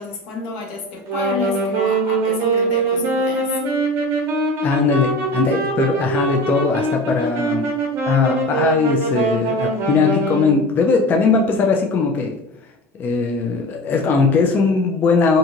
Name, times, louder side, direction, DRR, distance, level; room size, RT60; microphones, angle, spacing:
voice 1, 0.0-3.6, left 4 dB, 75° left, 1 dB, 0.8 m, -30 dB
Wind instrument woodwind instrument, 1.0-10.7, right 3 dB, 50° right, 0.8 m, -22 dB
voice 2, 4.6-7.7 8.0-12.4 12.9-15.4, left 4 dB, 30° left, 1 dB, 0.3 m, -19 dB
2.5 x 2.5 x 2.8 m, 0.86 s
supercardioid pair, 125°, 6 cm